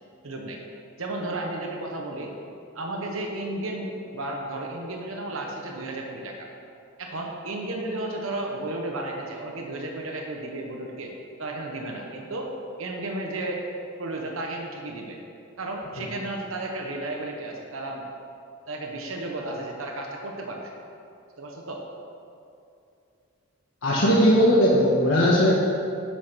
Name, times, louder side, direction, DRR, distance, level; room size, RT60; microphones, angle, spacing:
voice 1, 0.2-0.6 1.0-2.3 2.7-6.5 7.0-11.1 11.4-12.5 12.8-13.7 14.0-15.2 15.6-18.0 18.7-20.7 21.4-21.8, right 2 dB, 85° right, 1 dB, 1.1 m, -33 dB
voice 2, 23.8-25.5, equal, 75° left, -5 dB, 1.3 m, -19 dB
10.0 x 6.5 x 6.1 m, 2.6 s
head